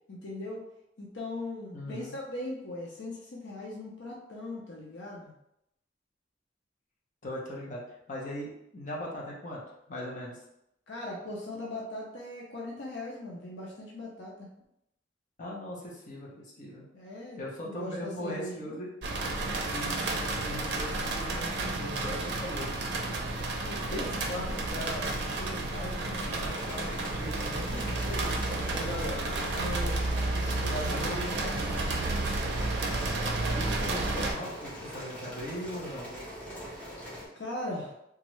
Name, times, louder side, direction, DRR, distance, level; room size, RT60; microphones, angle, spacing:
voice 1, 0.1-0.6 1.0-5.3 10.9-14.5 16.9-18.8 29.5-32.0 36.7-37.0 37.3-37.9, left 1 dB, 75° left, -3 dB, 0.6 m, -40 dB
voice 2, 1.7-2.2 7.2-7.8 8.1-9.6 9.9-10.4 15.4-16.8 17.4-18.9 19.7-23.3 23.6-29.3 30.5-31.3 33.5-36.1, equal, 45° left, -4 dB, 0.8 m, -39 dB
sound 1, 19.0-34.3, right 2 dB, 65° right, 0.5 m, -31 dB
sound 2, 26.4-37.3, equal, 10° left, 1.0 m, -42 dB
3.1 x 2.4 x 3.0 m, 0.80 s
head